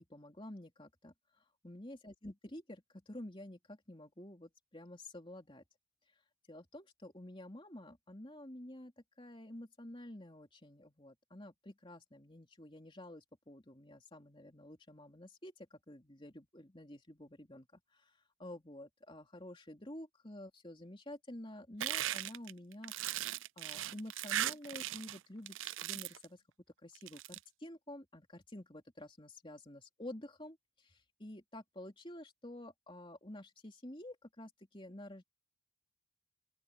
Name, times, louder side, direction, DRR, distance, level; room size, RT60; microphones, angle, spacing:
voice 1, 0.1-1.1 1.6-5.6 6.5-8.9 9.2-23.2 23.6-25.6 25.8-26.4 26.8-35.2, left 1 dB, 25° left, 3.2 m, -50 dB
sound 1, 21.8-25.2 25.5-26.2 26.9-27.4, right 13 dB, 65° right, 0.5 m, -38 dB
open air
head